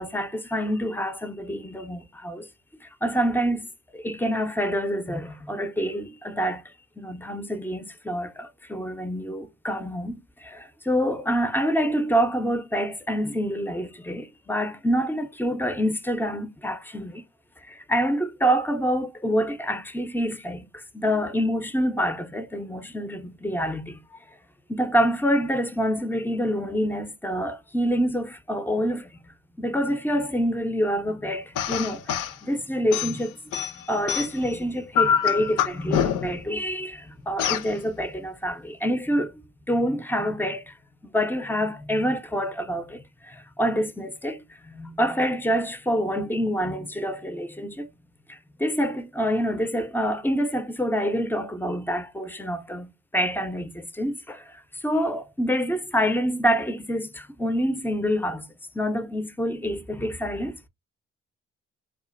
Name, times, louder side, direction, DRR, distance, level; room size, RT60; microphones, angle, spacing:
voice 1, 0.0-2.5 2.8-3.7 3.9-6.6 7.0-17.2 17.7-24.0 24.7-29.1 29.6-39.3 39.7-40.7 41.0-47.9 48.3-54.5 54.8-58.5 58.7-60.7, equal, 5° left, 0.4 m, -27 dB
sound 1, 31.6-32.4 32.9-34.5 34.9-36.4 37.4-37.7, left 8 dB, 60° left, 0.4 m, -25 dB
2.5 x 2.1 x 2.4 m
hypercardioid pair, 45°, 35 cm